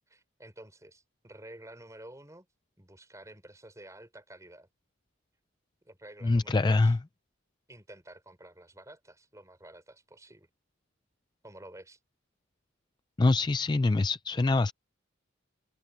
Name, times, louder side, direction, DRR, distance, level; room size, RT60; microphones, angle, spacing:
voice 1, 0.1-2.5 2.8-4.7 5.8-6.9 7.7-10.5 11.4-12.0, right 1 dB, 15° right, 4.8 m, -50 dB
voice 2, 6.2-7.0 13.2-14.7, left 3 dB, 20° left, 0.3 m, -24 dB
head